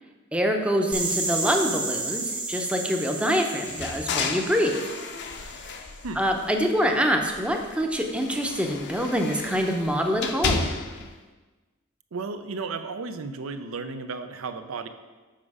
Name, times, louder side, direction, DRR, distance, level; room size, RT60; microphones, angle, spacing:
voice 1, 0.3-4.8 6.2-10.7, equal, 5° right, 3 dB, 0.6 m, -25 dB
sound 1, 0.9-5.7, right 3 dB, 25° right, 1.2 m, -32 dB
sound 2, 3.6-6.8 7.2-11.1, left 4 dB, 55° left, 0.6 m, -33 dB
voice 2, 12.1-14.9, right 4 dB, 70° right, 10 dB, 0.5 m, -34 dB
7.4 x 5.0 x 4.8 m, 1.3 s
head